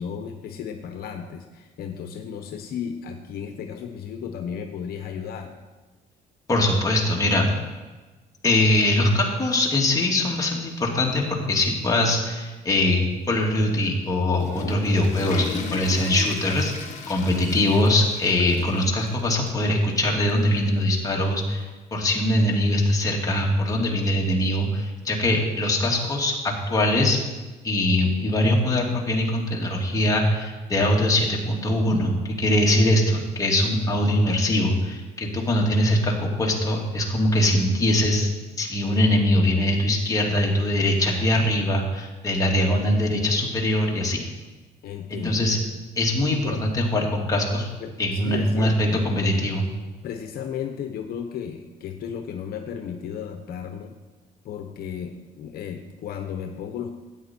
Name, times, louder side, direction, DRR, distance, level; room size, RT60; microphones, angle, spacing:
voice 1, 0.0-5.5 44.8-45.6 46.3-46.7 47.8-49.1 50.0-53.9 54.4-56.9, left 7 dB, 65° left, 5 dB, 1.0 m, -34 dB
voice 2, 6.5-7.5 8.4-21.6 21.9-27.2 27.6-38.3 38.6-44.2 45.1-45.6 46.0-47.7 48.0-49.7, left 1 dB, 20° left, -2 dB, 2.4 m, -22 dB
Water / Toilet flush, 14.2-19.2 19.5-19.6 20.3-20.4 21.7-21.8, left 4 dB, 45° left, 1.7 m, -36 dB
13.0 x 9.2 x 4.5 m, 1.3 s
cardioid pair, 110°, 17 cm